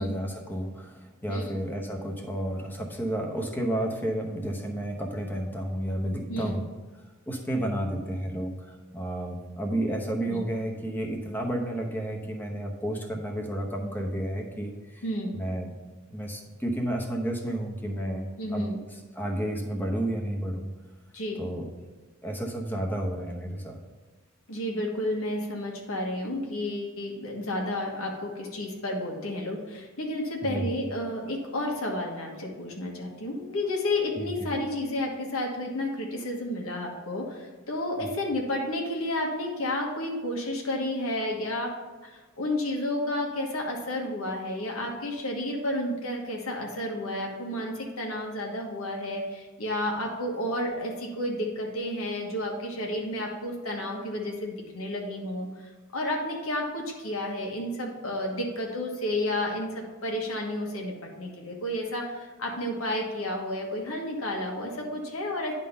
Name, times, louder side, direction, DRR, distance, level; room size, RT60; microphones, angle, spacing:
voice 1, 0.0-6.7 7.3-15.0 15.3-15.7 16.1-18.7 19.1-20.7 21.4-21.7 22.2-23.8 30.5-30.7 34.2-34.3, right 1 dB, 10° left, 1 dB, 0.9 m, -31 dB
voice 2, 15.0-15.4 18.4-18.8 21.1-21.4 24.5-41.7 42.0-55.5 55.9-65.5, left 1 dB, 80° left, 0 dB, 1.4 m, -31 dB
9.9 x 3.7 x 5.5 m, 1.3 s
head